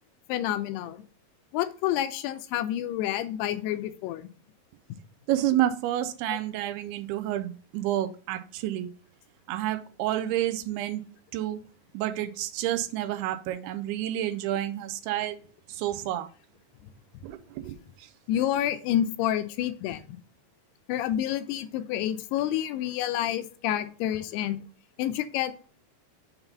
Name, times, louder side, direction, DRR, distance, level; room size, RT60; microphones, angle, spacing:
voice 1, 0.3-1.0 1.5-4.3 6.3-6.4 18.3-20.2 20.9-24.6 25.0-25.5, left 11 dB, 85° left, 2.6 m, -29 dB
voice 2, 5.3-8.9 9.5-11.0 11.3-11.6 11.9-15.4 15.8-16.3 17.2-17.4 17.7-17.8, right 13 dB, 80° right, 2.5 m, -29 dB
7.0 x 3.9 x 5.5 m
omnidirectional pair, 4.7 m